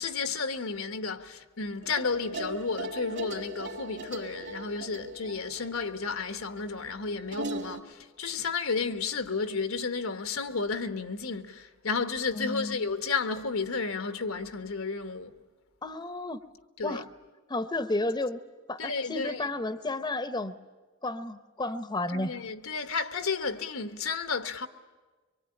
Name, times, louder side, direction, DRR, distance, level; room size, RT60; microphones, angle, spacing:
voice 1, 0.0-15.3 16.8-17.0 18.8-19.5 22.1-24.7, left 4 dB, 85° left, 1.4 m, -32 dB
sound 1, 1.8-7.8, right 2 dB, 60° right, 2.3 m, -39 dB
voice 2, 12.3-12.8 15.8-16.4 16.8-17.1 17.5-18.4 18.7-20.6 21.0-22.3, left 2 dB, 20° left, 0.7 m, -32 dB
24.5 x 23.5 x 9.9 m
head